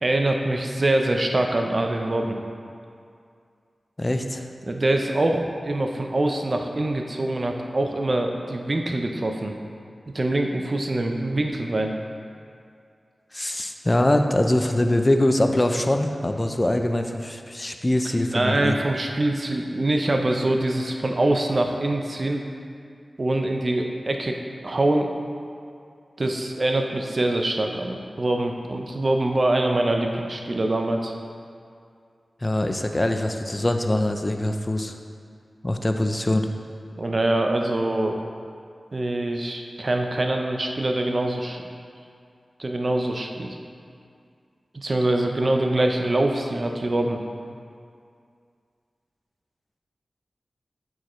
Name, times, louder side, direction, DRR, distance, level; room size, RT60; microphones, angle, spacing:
voice 1, 0.0-2.4 4.6-9.5 10.1-11.9 18.3-22.4 23.2-24.4 24.6-25.1 26.2-31.1 37.0-38.2 38.9-41.6 42.6-43.6 44.7-47.2, right 1 dB, 50° right, 3 dB, 0.6 m, -24 dB
voice 2, 4.0-4.5 13.3-18.8 32.4-35.0 35.6-36.5, left 1 dB, 30° left, 5 dB, 0.5 m, -23 dB
8.3 x 4.8 x 3.1 m, 2.3 s
cardioid pair, 45°, 0 cm